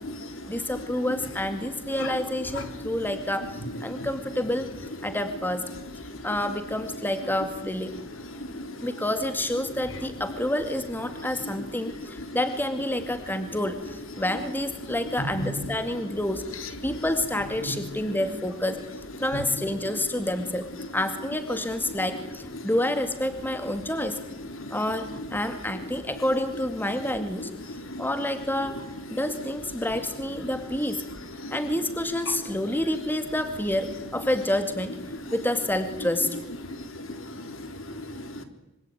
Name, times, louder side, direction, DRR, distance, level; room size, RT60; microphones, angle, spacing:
voice 1, 0.5-4.7 5.0-5.6 6.2-7.9 8.8-18.8 19.2-20.6 20.9-24.2 24.7-27.5 28.0-31.0 31.5-35.0 35.3-36.3, left 1 dB, 10° left, 8 dB, 2.2 m, -28 dB
voice 2, 27.7-28.0 31.4-31.6 36.7-38.4, left 1 dB, 80° left, 8 dB, 3.7 m, -37 dB
26.0 x 24.5 x 9.2 m, 0.94 s
head